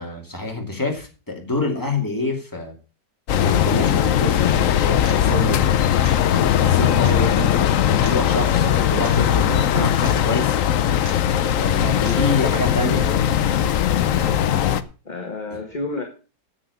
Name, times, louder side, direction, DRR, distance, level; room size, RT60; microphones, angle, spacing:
voice 1, 0.0-2.7 3.4-5.8 6.3-10.6 11.6-13.1 14.2-14.4, left 2 dB, 10° left, 1 dB, 2.7 m, -27 dB
sound 1, 3.3-14.8, left 10 dB, 60° left, 1.0 m, -19 dB
sound 2, 5.0-5.2 6.0-6.2 7.0-7.2 8.0-8.2 9.0-9.2 10.0-10.2 11.0-11.2 12.0-12.2, right 3 dB, 85° right, 2.8 m, -38 dB
voice 2, 11.9-12.7 13.0-13.3 14.2-14.8 15.1-16.0, left 3 dB, 30° left, 3 dB, 1.7 m, -31 dB
9.7 x 7.8 x 6.7 m, 0.36 s
omnidirectional pair, 1.8 m